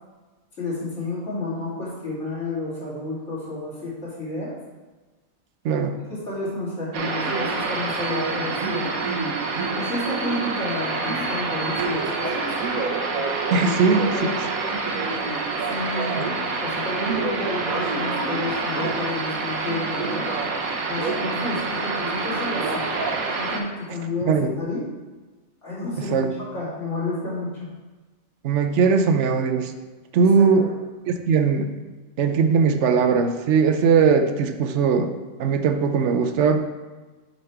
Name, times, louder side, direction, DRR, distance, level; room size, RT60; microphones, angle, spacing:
voice 1, 0.6-4.5 5.7-5.8 6.1-8.9 9.7-12.5 13.6-14.4 15.6-16.2 16.6-20.3 20.9-22.8 23.3-24.8 25.6-27.7 30.2-30.7, left 2 dB, 55° left, -8 dB, 3.0 m, -31 dB
voice 2, 5.6-6.0 13.5-14.1 24.3-24.5 26.1-26.3 28.4-29.7 30.1-30.6 31.1-31.7 32.2-35.1 35.4-36.7, right 5 dB, 65° right, 8 dB, 0.8 m, -19 dB
sound 1, 6.9-23.6, right 3 dB, 80° right, 1.3 m, -26 dB
6.9 x 5.2 x 4.5 m, 1.2 s
omnidirectional pair, 1.5 m